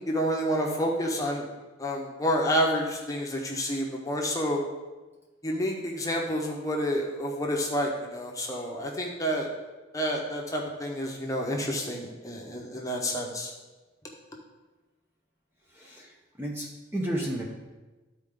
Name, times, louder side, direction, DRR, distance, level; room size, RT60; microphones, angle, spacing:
voice 1, 0.0-1.4 1.8-4.6 5.4-9.5 9.9-13.5, equal, 15° left, -1 dB, 1.0 m, -29 dB
voice 2, 15.7-16.1 16.4-17.4, right 1 dB, 10° right, -3 dB, 0.8 m, -32 dB
12.0 x 4.4 x 3.7 m, 1.2 s
head